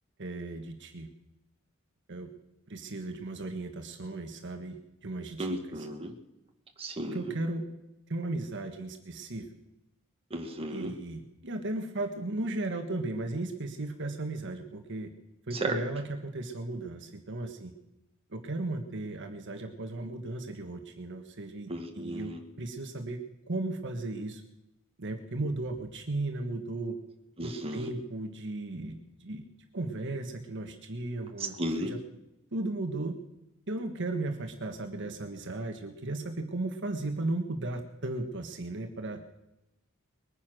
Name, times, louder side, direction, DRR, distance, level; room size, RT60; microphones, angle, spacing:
voice 1, 0.2-1.1 2.1-2.3 2.7-5.9 7.0-7.6 8.1-9.5 10.7-15.1 15.5-17.7 18.3-21.7 21.9-23.2 23.5-24.4 25.0-27.0 27.4-28.9 29.2-29.5 29.7-32.0 32.5-33.2 33.7-39.2, right 2 dB, 60° right, 5 dB, 1.4 m, -35 dB
voice 2, 5.4-6.1 6.8-7.2 10.3-10.9 15.6-15.7 21.7-22.4 27.4-27.9 31.6-31.9, right 1 dB, 25° right, 3 dB, 1.8 m, -34 dB
21.5 x 9.8 x 6.3 m, 0.92 s
head